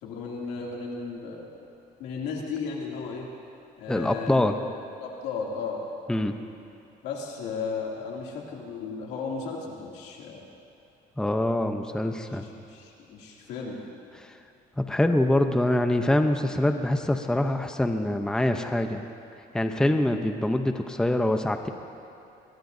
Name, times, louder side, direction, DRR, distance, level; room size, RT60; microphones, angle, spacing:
voice 1, 0.0-1.5 2.0-3.3 3.8-4.4 5.0-5.8 7.0-10.5 12.4-13.8, left 5 dB, 90° left, -2 dB, 2.7 m, -35 dB
voice 2, 3.9-4.6 6.1-6.3 11.2-12.5 14.2-14.3 14.8-19.0 19.5-21.7, left 1 dB, 5° left, 6 dB, 0.7 m, -24 dB
23.0 x 18.0 x 2.7 m, 2.7 s
cardioid pair, 110°, 17 cm